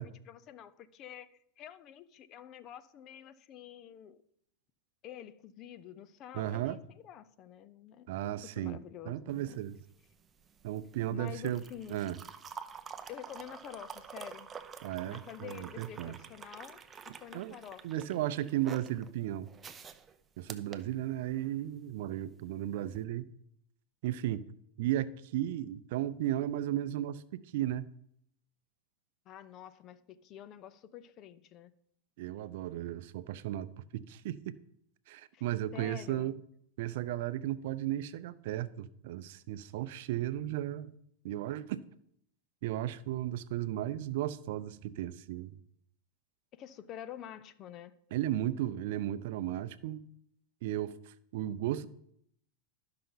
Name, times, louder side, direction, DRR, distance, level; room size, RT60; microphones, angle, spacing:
voice 1, 0.0-4.2 5.0-8.1 8.4-9.7 11.1-12.1 13.1-14.5 15.1-16.8 17.2-18.1 29.3-31.7 35.3-35.4 35.7-36.4 46.5-47.9, left 10 dB, 40° left, 0.6 m, -48 dB
voice 2, 6.3-6.8 8.1-8.8 9.1-9.8 10.6-11.6 11.9-12.2 14.8-16.2 17.3-17.6 17.8-19.5 20.4-23.3 24.0-24.5 24.8-27.9 32.2-34.6 35.1-36.4 36.8-40.9 41.2-41.8 42.6-45.6 48.1-50.0 50.6-51.9, right 13 dB, 65° right, 0.5 m, -35 dB
sound 1, 9.3-21.6 22.8-23.0, right 6 dB, 20° right, 0.6 m, -49 dB
12.5 x 5.7 x 4.0 m
supercardioid pair, 125°, 0 cm